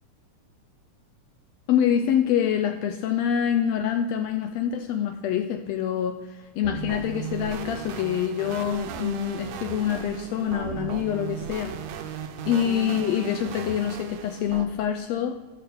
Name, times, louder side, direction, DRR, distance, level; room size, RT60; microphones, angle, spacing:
voice 1, 1.7-11.7 12.5-15.3, left 9 dB, 85° left, 6 dB, 1.5 m, -26 dB
sound 1, 6.6-14.6, right 9 dB, 75° right, 1.7 m, -36 dB
11.5 x 4.1 x 6.8 m, 1.2 s
omnidirectional pair, 3.6 m